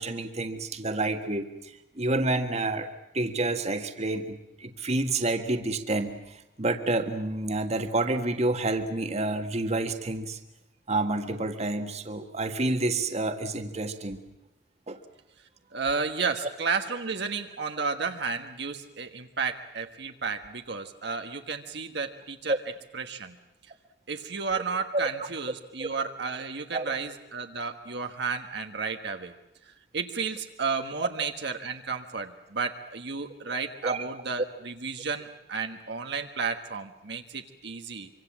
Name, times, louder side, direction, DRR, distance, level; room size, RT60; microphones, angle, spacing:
voice 1, 0.0-1.5 2.0-2.9 3.1-10.4 10.9-14.2 14.9-15.0 22.5-22.6 24.9-25.1 25.8-25.9 26.7-26.9 33.8-34.0, right 2 dB, 40° right, 7 dB, 1.7 m, -29 dB
voice 2, 15.7-22.6 22.9-23.4 24.1-29.3 29.6-38.1, right 5 dB, 65° right, 5 dB, 1.5 m, -32 dB
25.5 x 25.0 x 7.5 m, 0.86 s
head